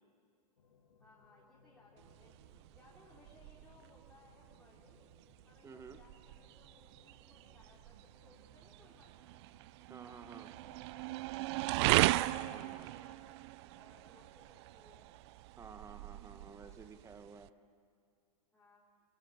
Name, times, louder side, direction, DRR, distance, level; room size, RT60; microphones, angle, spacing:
sound 1, 0.6-15.4, left 5 dB, 75° left, 2.6 m, -69 dB
voice 1, 1.0-9.4 10.0-11.4 12.3-13.3 13.7-15.2 16.5-17.0 18.5-18.8, left 2 dB, 5° left, -7 dB, 3.7 m, -65 dB
sound 2, 2.0-17.5, right 18 dB, 45° right, 0.5 m, -38 dB
voice 2, 5.6-6.0 9.9-10.5 12.1-12.9 15.6-17.5, right 5 dB, 15° right, 10 dB, 1.3 m, -52 dB
25.0 x 22.5 x 6.5 m, 2.2 s
figure-of-eight pair, 105°, 21 cm